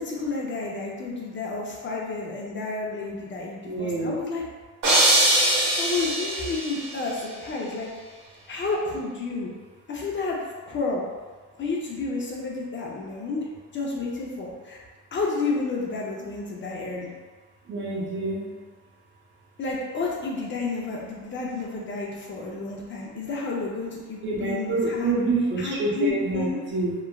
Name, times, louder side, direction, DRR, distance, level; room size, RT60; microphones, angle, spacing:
voice 1, 0.0-4.4 5.8-7.9 8.5-9.5 9.9-10.4 10.7-11.0 11.6-13.5 13.7-14.8 15.1-17.1 19.6-25.1 25.6-26.6, left 3 dB, 35° left, -3 dB, 0.5 m, -30 dB
voice 2, 3.7-4.1 17.7-18.4 24.2-26.9, right 2 dB, 35° right, -4 dB, 0.6 m, -27 dB
sound 1, 4.8-6.9, right 1 dB, 75° right, 1.1 m, -21 dB
3.1 x 2.1 x 2.2 m, 1.4 s
cardioid pair, 105°, 33 cm